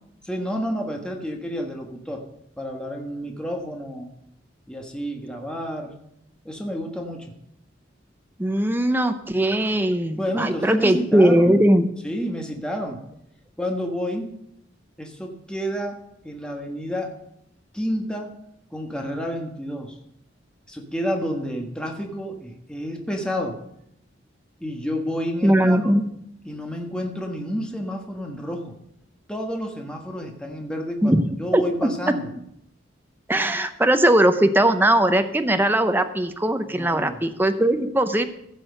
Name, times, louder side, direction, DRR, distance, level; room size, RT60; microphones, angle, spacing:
voice 1, 0.2-2.2 2.6-4.1 4.7-6.0 6.4-7.3 10.2-11.6 12.0-13.0 13.6-14.3 15.0-16.0 16.2-17.2 17.7-18.3 18.7-19.9 20.7-23.6 24.6-25.8 26.4-28.7 29.3-32.3 36.7-37.3, equal, 5° left, 2 dB, 1.4 m, -30 dB
voice 2, 8.4-11.9 25.4-26.0 31.0-31.2 31.5-31.9 33.3-38.2, right 1 dB, 10° right, 8 dB, 0.7 m, -19 dB
15.5 x 6.2 x 6.6 m, 0.75 s
head